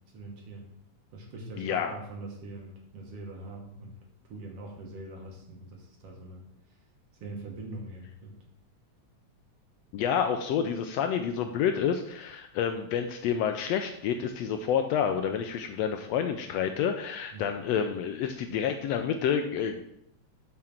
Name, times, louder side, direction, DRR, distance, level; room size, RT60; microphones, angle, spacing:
voice 1, 0.1-0.7 1.1-4.0 4.3-6.4 7.2-8.4 17.3-17.5, right 2 dB, 60° right, 1 dB, 2.1 m, -43 dB
voice 2, 1.6-1.9 9.9-19.8, left 8 dB, 80° left, 6 dB, 1.5 m, -29 dB
7.7 x 4.9 x 5.7 m, 0.74 s
omnidirectional pair, 3.3 m